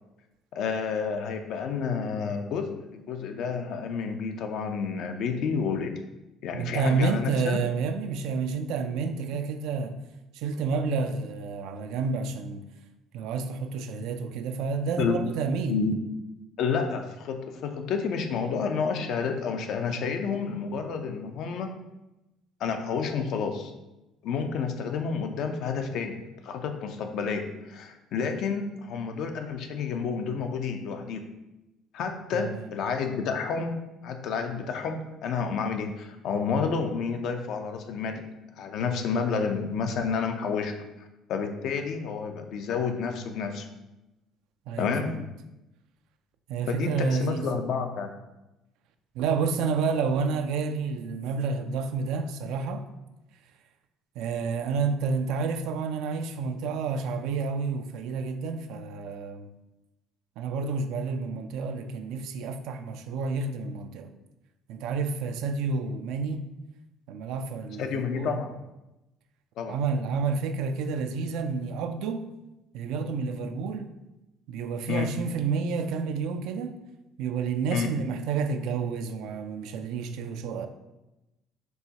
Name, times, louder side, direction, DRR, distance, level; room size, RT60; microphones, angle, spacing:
voice 1, 0.5-6.0 6.4-7.6 15.0-15.2 15.7-16.0 16.6-21.7 22.6-23.7 24.2-26.2 26.4-31.2 31.9-33.8 34.0-38.2 38.6-40.8 41.3-43.7 44.8-45.2 46.7-48.1 67.8-68.5 69.6-69.8 74.9-75.1 77.7-77.9, left 5 dB, 70° left, 0.5 m, -30 dB
voice 2, 6.5-10.0 10.3-12.6 13.1-15.8 32.3-32.7 44.7-45.3 46.5-47.5 49.2-52.9 54.2-59.5 60.4-64.1 64.7-66.4 67.1-68.4 69.7-72.3 72.7-73.9 74.5-76.8 77.2-80.7, right 4 dB, 75° right, 0.3 m, -29 dB
4.6 x 3.1 x 2.8 m
supercardioid pair, 85°, 0 cm